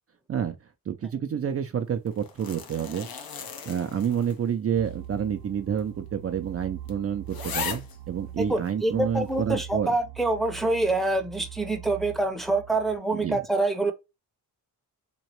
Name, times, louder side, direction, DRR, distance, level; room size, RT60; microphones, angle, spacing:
voice 1, 0.9-3.1 3.7-9.9 13.1-13.4, right 8 dB, 40° right, 0.5 m, -29 dB
sound 1, 2.1-4.5 4.9-5.0 5.8-5.9 6.3-6.4 6.9-7.0 7.3-8.0 8.7-8.8, left 6 dB, 80° left, 0.9 m, -37 dB
sound 2, 4.8-13.0, right 11 dB, 90° right, 0.6 m, -43 dB
voice 2, 8.4-13.9, right 2 dB, ahead, 0.7 m, -26 dB
3.6 x 3.0 x 2.9 m
wide cardioid pair, 125°, 35 cm